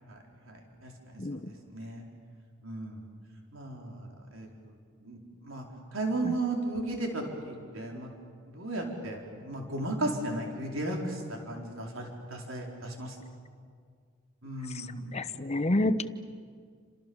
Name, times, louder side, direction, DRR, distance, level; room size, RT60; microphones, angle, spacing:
voice 1, 0.5-1.4 1.7-2.0 2.6-3.0 3.5-4.5 5.0-5.6 5.9-8.1 8.5-13.2 14.4-15.3, right 2 dB, 80° right, 0 dB, 4.4 m, -35 dB
voice 2, 15.1-16.1, left 1 dB, 30° left, 11 dB, 0.9 m, -28 dB
30.0 x 27.0 x 7.1 m, 2.1 s
head